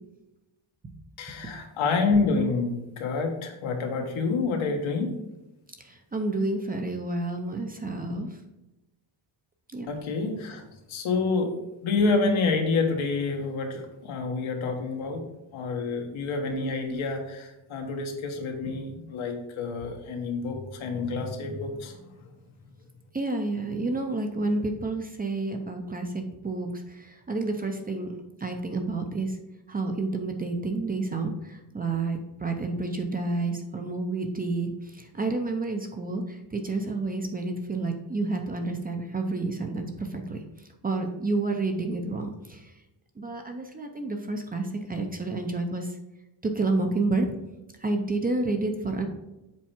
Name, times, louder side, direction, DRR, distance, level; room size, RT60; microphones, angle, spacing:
voice 1, 1.2-5.1 9.9-10.6 10.9-11.5 11.8-15.2 15.5-22.0, left 4 dB, 80° left, 2 dB, 1.5 m, -28 dB
voice 2, 5.8-8.3 9.7-9.9 16.5-17.0 23.1-28.1 28.4-29.3 29.7-34.7 35.0-36.2 36.5-40.4 40.8-42.6 43.2-45.9 46.5-47.3 47.8-49.1, right 3 dB, 20° right, 4 dB, 0.5 m, -29 dB
7.4 x 4.4 x 4.4 m, 0.98 s
cardioid pair, 165°, 47 cm